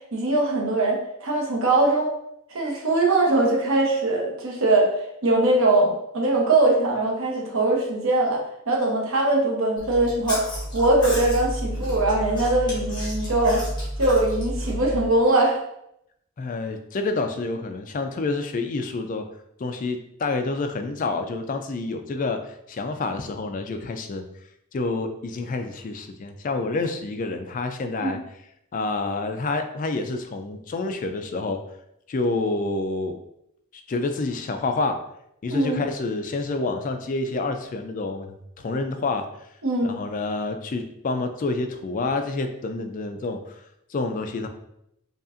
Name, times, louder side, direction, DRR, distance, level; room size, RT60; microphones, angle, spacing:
voice 1, 0.1-2.1 2.5-13.6 14.0-15.6 28.0-28.2 35.5-35.8 39.6-40.0, right 2 dB, 80° right, -1 dB, 0.9 m, -21 dB
Chewing mastication, 9.8-15.1, equal, 20° left, 1.3 m, -30 dB
voice 2, 16.4-19.3 19.6-24.2 24.7-28.2 28.7-31.6 32.1-33.2 33.7-35.0 35.4-39.3 39.8-43.5 43.9-44.5, left 3 dB, 40° left, 7 dB, 0.3 m, -28 dB
5.2 x 2.4 x 2.5 m, 0.78 s
head